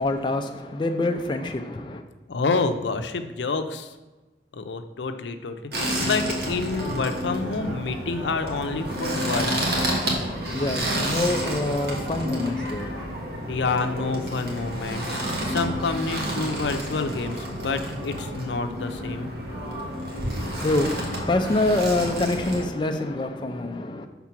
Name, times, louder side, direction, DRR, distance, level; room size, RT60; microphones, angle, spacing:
voice 1, 0.0-2.0 10.0-13.2 20.4-24.1, left 2 dB, 25° left, 5 dB, 0.4 m, -26 dB
voice 2, 2.3-3.9 4.5-10.0 13.5-19.3, left 4 dB, 90° left, 8 dB, 0.5 m, -28 dB
sound 1, 5.7-22.6, equal, 65° right, 1.4 m, -30 dB
5.9 x 3.7 x 5.8 m, 1.2 s
head